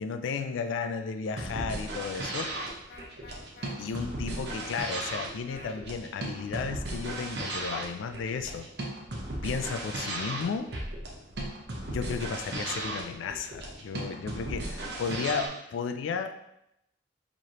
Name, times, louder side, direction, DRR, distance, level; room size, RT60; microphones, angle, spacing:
voice 1, 0.0-2.5 3.8-8.7 9.4-10.7 11.9-16.4, left 5 dB, 85° left, 8 dB, 0.3 m, -34 dB
sound 1, 1.3-15.5, right 1 dB, 60° right, 0.7 m, -36 dB
sound 2, 2.6-3.7 5.5-5.8 7.0-7.4 9.7-10.0, left 3 dB, 45° left, 0.7 m, -48 dB
4.7 x 3.0 x 2.9 m, 0.82 s
head